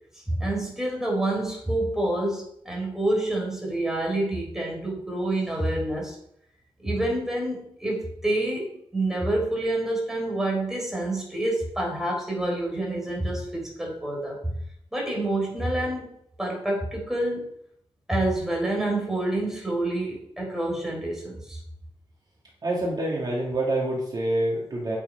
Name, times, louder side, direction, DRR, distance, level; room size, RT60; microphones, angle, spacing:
voice 1, 0.3-6.2 6.8-14.4 14.9-16.1 16.4-17.5 18.1-21.6, right 1 dB, 5° right, -2 dB, 3.8 m, -27 dB
voice 2, 22.6-25.0, right 1 dB, 45° right, -3 dB, 2.6 m, -26 dB
9.1 x 7.1 x 5.2 m, 0.71 s
wide cardioid pair, 150°, 10 cm